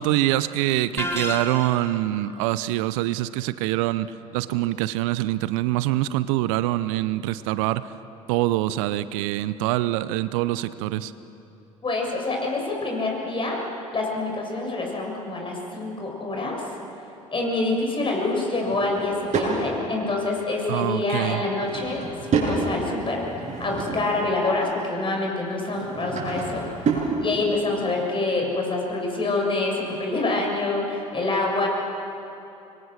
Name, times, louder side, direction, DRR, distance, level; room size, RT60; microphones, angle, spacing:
voice 1, 0.0-7.9 8.3-11.1 20.7-21.4, right 15 dB, 70° right, 15 dB, 0.7 m, -25 dB
sound 1, 1.0-2.0, left 1 dB, 15° left, 2.4 m, -30 dB
voice 2, 11.8-13.7 13.9-16.7 17.3-31.7, left 2 dB, 30° left, 0 dB, 6.9 m, -26 dB
Drawer open or close / Wood, 18.6-19.6 21.3-22.6 23.1-24.3 25.6-27.1, right 5 dB, 45° right, 7.4 m, -29 dB
26.0 x 23.0 x 6.5 m, 2.9 s
hypercardioid pair, 60°, 18 cm